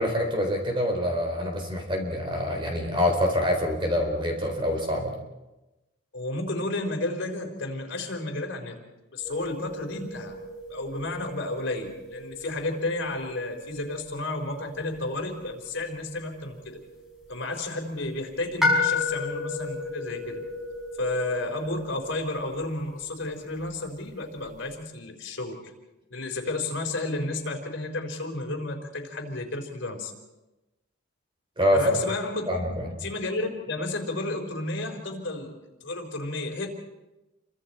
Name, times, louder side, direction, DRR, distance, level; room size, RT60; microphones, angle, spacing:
voice 1, 0.0-5.1 31.6-31.8 32.5-33.0, left 1 dB, 25° right, 2 dB, 4.2 m, -26 dB
voice 2, 6.1-8.8 9.1-10.3 10.7-16.8 17.3-20.4 21.0-25.6 26.1-30.1 31.7-32.6 33.0-36.7, left 2 dB, 65° left, 3 dB, 4.1 m, -32 dB
sound 1, 9.2-24.7, left 3 dB, ahead, 6.6 m, -35 dB
29.5 x 24.5 x 4.4 m, 1.0 s
head